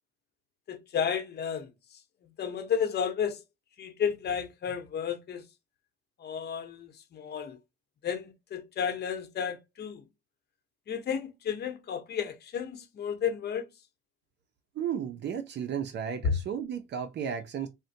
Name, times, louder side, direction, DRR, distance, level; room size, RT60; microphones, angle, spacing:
voice 1, 0.7-1.7 2.4-3.4 3.8-5.4 6.2-7.6 8.0-10.0 10.9-13.7 16.2-16.3, left 7 dB, 55° left, 0.9 m, -32 dB
voice 2, 14.8-17.7, right 8 dB, 60° right, 0.6 m, -34 dB
4.0 x 2.2 x 2.7 m
cardioid pair, 90°, 20 cm